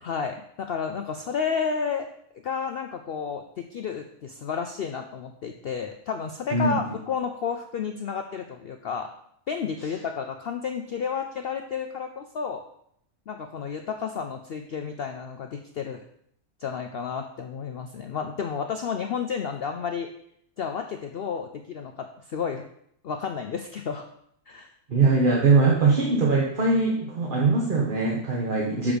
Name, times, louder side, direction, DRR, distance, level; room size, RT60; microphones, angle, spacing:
voice 1, 0.0-2.1 2.4-9.1 9.5-12.6 13.3-16.0 16.6-20.1 20.6-22.6 23.0-24.1 24.5-24.7, left 6 dB, 60° left, 5 dB, 0.6 m, -31 dB
voice 2, 24.9-28.9, right 3 dB, 40° right, -3 dB, 1.3 m, -21 dB
6.9 x 6.0 x 5.1 m, 0.70 s
omnidirectional pair, 1.5 m